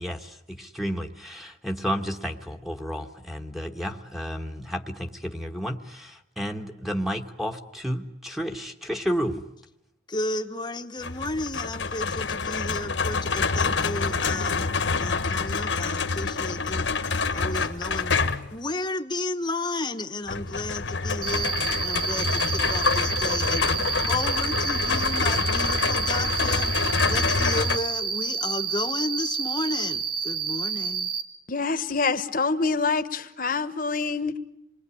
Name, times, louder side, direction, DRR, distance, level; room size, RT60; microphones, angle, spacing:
voice 1, 0.0-9.4, equal, ahead, 3 dB, 1.4 m, -31 dB
voice 2, 10.1-16.9 17.3-18.2 18.5-31.1, left 2 dB, 20° left, 8 dB, 1.1 m, -33 dB
sound 1, 11.0-18.6 20.3-27.8, left 4 dB, 70° left, 1.4 m, -26 dB
Cricket, 21.2-31.2, right 6 dB, 20° right, 2.4 m, -29 dB
voice 3, 31.5-34.4, left 4 dB, 45° left, 11 dB, 1.2 m, -26 dB
28.0 x 21.5 x 9.9 m, 0.85 s
head